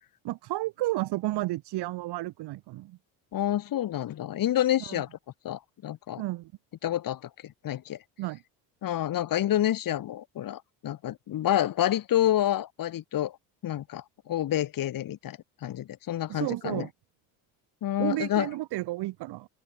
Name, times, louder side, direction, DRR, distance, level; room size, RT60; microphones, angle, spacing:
voice 1, 0.2-3.0 4.9-5.0 6.2-6.5 8.2-8.4 16.3-16.9 18.0-19.5, right 17 dB, 70° right, 3.0 m, -32 dB
voice 2, 3.3-5.1 5.4-6.2 6.8-8.0 8.8-13.4 13.6-16.9 17.8-18.5, left 12 dB, 50° left, 1.8 m, -28 dB
open air
supercardioid pair, 75°, 42 cm